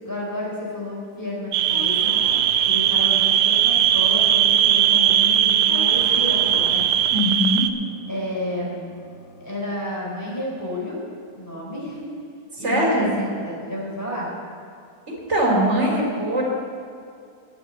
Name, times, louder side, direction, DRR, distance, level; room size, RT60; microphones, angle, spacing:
voice 1, 0.0-6.8 8.1-9.0 9.4-11.0 11.3-12.1 12.6-14.3, left 1 dB, 10° left, -4 dB, 3.5 m, -31 dB
sound 1, 1.5-7.7, right 10 dB, 90° right, 1.2 m, -19 dB
sound 2, 1.7-9.7, left 2 dB, 55° left, 1.4 m, -41 dB
voice 2, 7.1-7.6 12.5-13.2 15.1-16.4, equal, 40° right, -2 dB, 3.2 m, -21 dB
9.0 x 8.9 x 8.9 m, 2.4 s
omnidirectional pair, 1.8 m